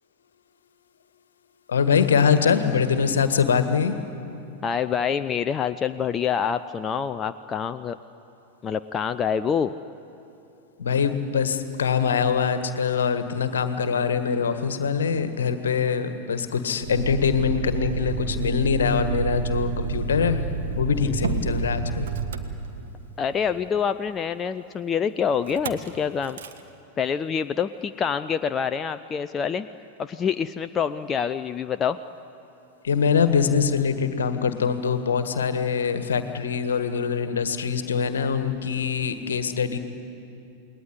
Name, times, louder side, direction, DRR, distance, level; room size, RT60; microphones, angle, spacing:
voice 1, 1.7-4.0 10.8-20.5 20.7-22.1 32.8-39.8, left 6 dB, 70° left, 9 dB, 1.6 m, -23 dB
voice 2, 4.6-8.0 8.6-9.7 21.0-21.1 23.2-26.4 27.0-29.7 30.0-32.0, left 7 dB, 25° left, 10 dB, 0.6 m, -26 dB
Motor vehicle (road), 16.8-23.2 25.4-25.9 26.2-26.6, right 5 dB, 65° right, 1.5 m, -30 dB
28.5 x 20.5 x 9.9 m, 2.8 s
figure-of-eight pair, 90°, 0 cm